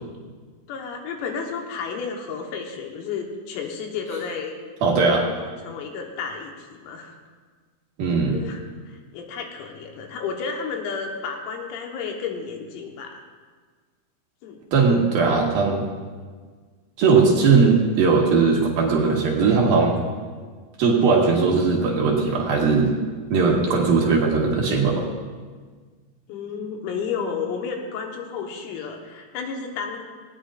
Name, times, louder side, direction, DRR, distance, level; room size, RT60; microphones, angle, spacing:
voice 1, 0.7-4.6 5.4-7.2 8.3-13.2 14.4-14.6 26.3-30.1, left 5 dB, 85° left, 2 dB, 3.9 m, -32 dB
voice 2, 4.8-5.3 8.0-8.4 14.7-15.8 17.0-20.0 20.8-22.9 23.3-25.0, right 4 dB, 65° right, -2 dB, 2.6 m, -19 dB
19.0 x 17.5 x 2.5 m, 1.5 s
omnidirectional pair, 5.9 m